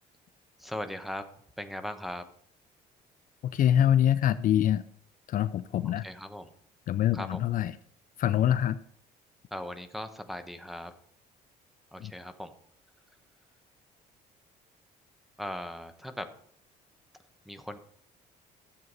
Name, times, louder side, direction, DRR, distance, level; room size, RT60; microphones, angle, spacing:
voice 1, 0.6-1.3 1.6-2.3 5.8-6.5 7.1-7.4 9.5-10.9 11.9-12.5 15.4-16.3 17.5-17.8, left 1 dB, ahead, 9 dB, 1.0 m, -38 dB
voice 2, 3.4-4.8 5.3-6.0 6.9-7.7 8.2-8.8 12.0-12.1, left 10 dB, 55° left, 14 dB, 0.5 m, -25 dB
12.5 x 7.8 x 4.0 m, 0.62 s
cardioid pair, 110°, 17 cm